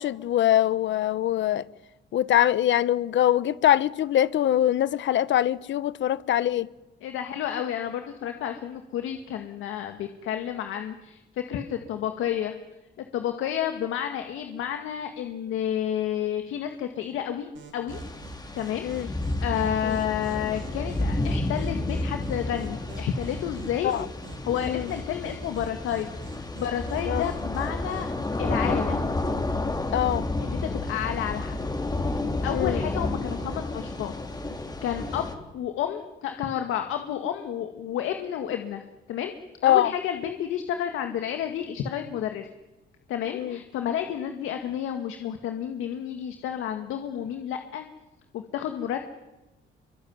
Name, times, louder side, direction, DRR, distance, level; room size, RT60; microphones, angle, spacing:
voice 1, 0.0-1.6 2.1-6.7 18.8-19.1 19.8-20.0 23.8-24.0 24.6-24.9 27.1-27.2 29.9-30.3 32.5-32.8 39.6-39.9 43.3-43.6, left 12 dB, 70° left, 1.0 m, -23 dB
voice 2, 7.0-12.5 13.1-18.0 18.5-23.9 24.4-28.1 28.4-29.0 30.4-31.6 32.0-34.1 34.8-35.3 35.5-39.3 39.6-42.5 43.1-47.8 48.3-49.1, left 10 dB, 90° left, 2.0 m, -31 dB
sound 1, 17.6-28.2, right 5 dB, 75° right, 7.6 m, -47 dB
sound 2, 17.9-35.3, left 2 dB, 20° left, 3.5 m, -31 dB
26.0 x 24.0 x 9.6 m
cardioid pair, 90°, 20 cm